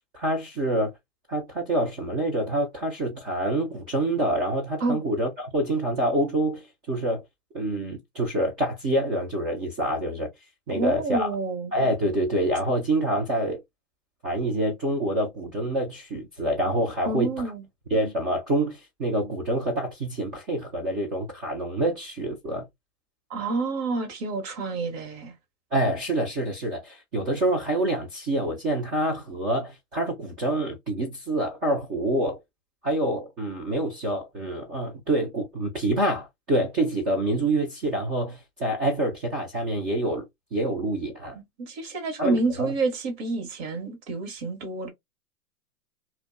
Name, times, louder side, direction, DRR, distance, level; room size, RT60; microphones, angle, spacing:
voice 1, 0.1-0.9 1.3-7.2 7.5-10.3 10.7-11.3 11.7-13.6 14.2-17.3 17.9-22.7 25.7-32.4 32.8-40.3 40.5-41.4 42.2-42.7, right 1 dB, 20° right, 0.4 m, -26 dB
voice 2, 10.7-11.7 17.0-17.6 23.3-25.3 41.6-44.9, right 3 dB, 45° right, 1.0 m, -28 dB
2.5 x 2.2 x 2.4 m
hypercardioid pair, 125°, 45 cm